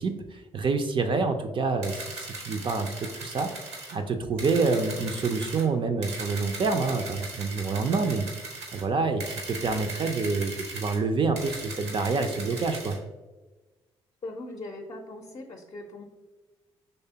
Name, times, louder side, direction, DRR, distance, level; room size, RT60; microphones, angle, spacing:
voice 1, 0.0-2.9 3.2-3.5 3.9-8.3 8.7-13.0, right 4 dB, 35° right, 6 dB, 0.5 m, -27 dB
sound 1, 1.8-3.9 4.4-5.6 6.0-8.8 9.2-11.0 11.4-13.0, right 3 dB, 80° right, 0.9 m, -39 dB
voice 2, 14.2-16.0, left 2 dB, 35° left, 2 dB, 0.6 m, -40 dB
5.5 x 3.3 x 2.8 m, 1.2 s
figure-of-eight pair, 40°, 14 cm